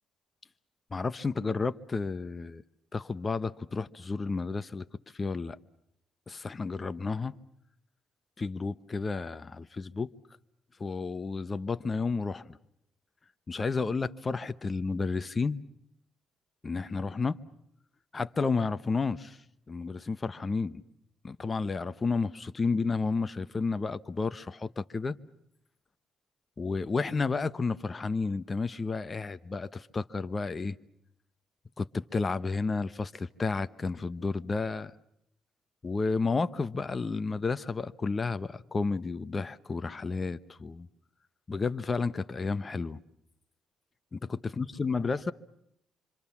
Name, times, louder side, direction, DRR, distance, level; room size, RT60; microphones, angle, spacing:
voice 1, 0.9-2.6 2.9-4.9 5.1-5.6 6.3-7.3 8.4-10.1 10.8-12.6 13.5-15.6 16.6-17.4 18.1-19.4 19.7-20.8 21.2-25.2 26.6-30.8 31.8-34.9 35.8-40.9 41.5-43.0 44.1-45.3, left 4 dB, 30° left, 1.0 m, -31 dB
26.0 x 26.0 x 7.2 m
cardioid pair, 90°, 0 cm